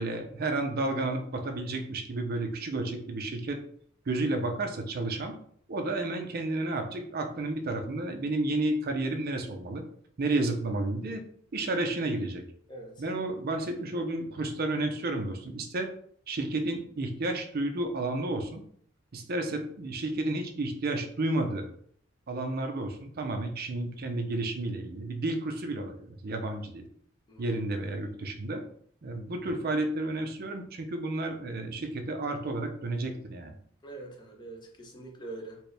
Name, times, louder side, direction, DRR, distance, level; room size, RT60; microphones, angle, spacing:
voice 1, 0.0-3.6 4.1-5.3 5.7-9.8 10.2-11.2 11.5-12.4 13.0-15.9 16.3-18.6 19.1-21.7 22.3-26.8 27.4-28.6 29.0-33.6, right 2 dB, 50° right, 5 dB, 0.6 m, -31 dB
voice 2, 12.7-13.0 27.3-27.6 33.8-35.6, right 2 dB, 20° left, 1 dB, 0.8 m, -44 dB
4.4 x 2.2 x 3.2 m, 0.62 s
head